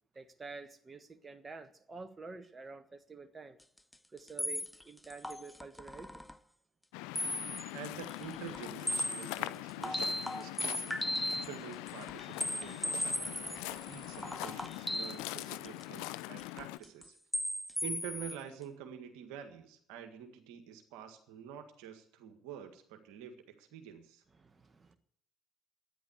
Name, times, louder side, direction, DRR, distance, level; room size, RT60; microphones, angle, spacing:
voice 1, 0.1-3.6 4.1-6.2 11.2-11.5 24.4-25.0, right 4 dB, 30° right, 1.4 m, -49 dB
sound 1, 3.9-4.0 4.4-6.3 7.2-7.7 8.0-9.4 9.7-11.6 11.9-16.0 16.4-17.1 17.3-18.4, left 1 dB, 10° left, 1.0 m, -36 dB
Waves surf, 6.9-16.8, left 19 dB, 75° left, 0.5 m, -42 dB
voice 2, 7.7-11.1 11.4-17.2 17.8-24.2, right 8 dB, 75° right, 1.8 m, -48 dB
12.5 x 10.0 x 8.1 m
hypercardioid pair, 50°, 0 cm